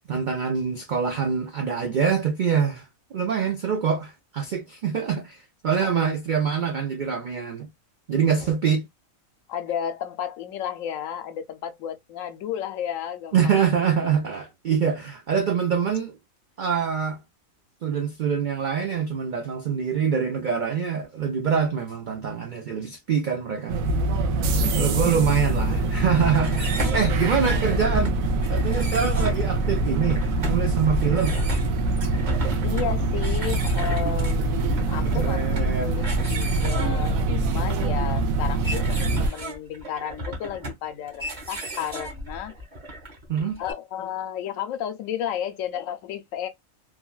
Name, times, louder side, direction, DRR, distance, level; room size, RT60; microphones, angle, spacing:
voice 1, 0.1-2.8 3.1-7.7 8.1-8.9 13.3-16.2 16.6-17.2 17.8-23.8 24.7-28.2 28.5-31.4 35.0-36.0 43.3-43.6, right 6 dB, 70° right, 0.4 m, -25 dB
voice 2, 8.1-8.6 9.5-13.6 24.4-25.3 26.1-26.3 26.8-27.3 32.6-42.5 43.6-46.5, left 9 dB, 75° left, 0.9 m, -33 dB
sound 1, 21.3-22.6 22.9-23.0 23.2-26.0 26.6-32.1, equal, 15° left, 0.5 m, -43 dB
sound 2, 23.7-39.3, right 2 dB, 85° right, 1.0 m, -24 dB
sound 3, 26.3-43.7, right 1 dB, 35° right, 0.9 m, -36 dB
3.1 x 2.3 x 2.2 m
omnidirectional pair, 1.4 m